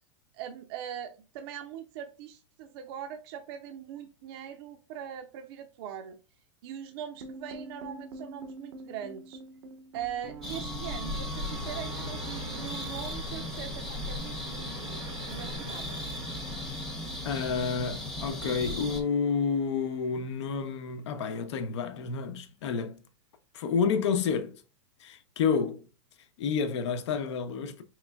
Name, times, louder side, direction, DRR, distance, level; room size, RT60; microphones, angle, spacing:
voice 1, 0.3-6.2 6.6-9.4 9.9-16.0, right 9 dB, 50° right, 0.5 m, -41 dB
sound 1, 7.2-19.4, right 1 dB, 85° right, 0.8 m, -44 dB
sound 2, 10.4-19.0, left 1 dB, ahead, 0.8 m, -37 dB
voice 2, 17.2-23.0 23.5-24.6 25.0-25.9 26.4-27.8, left 6 dB, 70° left, 0.8 m, -30 dB
4.5 x 3.1 x 2.2 m
supercardioid pair, 140°, 15 cm